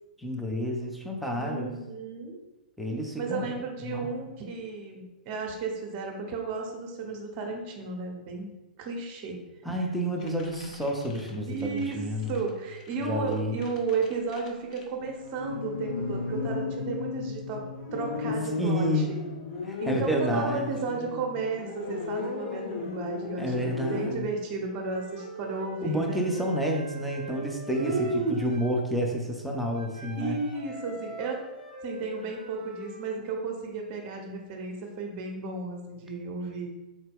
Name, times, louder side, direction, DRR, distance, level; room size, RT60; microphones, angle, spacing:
voice 1, 0.2-1.7 2.8-3.5 3.8-4.1 9.6-12.4 13.0-13.6 18.6-19.1 19.6-20.7 23.4-24.3 25.8-30.4, equal, ahead, -1 dB, 0.5 m, -29 dB
voice 2, 1.3-2.4 3.2-8.5 8.8-9.4 11.5-17.6 17.9-18.9 19.8-26.2 27.8-28.5 30.2-31.4 31.8-36.7, right 4 dB, 35° right, 1 dB, 0.8 m, -33 dB
sound 1, 10.2-11.9 12.2-12.5 12.8-13.0 13.3-24.1, left 4 dB, 55° left, 0.6 m, -35 dB
Wind instrument woodwind instrument, 24.7-28.8 29.7-33.1, right 1 dB, 75° left, 1.0 m, -44 dB
4.0 x 2.1 x 3.5 m, 1.1 s
figure-of-eight pair, 115°, 5 cm